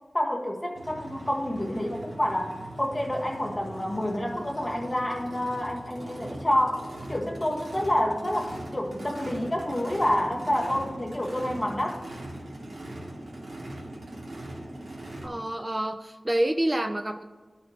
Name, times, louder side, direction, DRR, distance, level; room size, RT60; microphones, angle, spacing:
voice 1, 0.1-12.0, left 1 dB, 30° left, 1 dB, 1.5 m, -28 dB
Race car auto racing / Idling / Accelerating revving vroom, 0.8-15.3, right 1 dB, 80° right, 2.5 m, -40 dB
voice 2, 15.2-17.2, right 1 dB, 25° right, 6 dB, 0.5 m, -27 dB
14.5 x 6.1 x 3.0 m, 1.3 s
wide cardioid pair, 70°, 0 cm